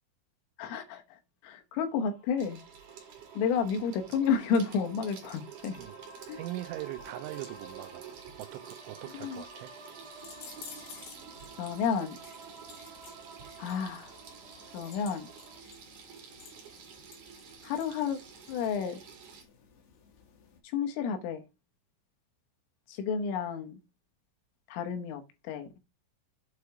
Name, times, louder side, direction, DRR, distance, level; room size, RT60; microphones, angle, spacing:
voice 1, 0.6-2.6 3.4-5.8 6.3-6.4 9.1-9.4 11.6-12.2 13.6-14.1 14.7-15.3 17.6-18.2 18.5-19.0 20.6-21.4 22.9-23.8 24.7-25.7, left 6 dB, 80° left, 3.6 m, -31 dB
sound 1, 2.0-15.6, right 3 dB, 30° right, 3.0 m, -52 dB
Water tap faucet / Sink (filling or washing), 2.4-19.4, right 7 dB, 50° right, 3.2 m, -50 dB
voice 2, 5.8-8.1 8.4-9.7, right 16 dB, 80° right, 2.9 m, -41 dB
sound 2, 10.2-20.6, left 6 dB, 60° left, 3.3 m, -54 dB
8.1 x 4.9 x 4.8 m
omnidirectional pair, 5.9 m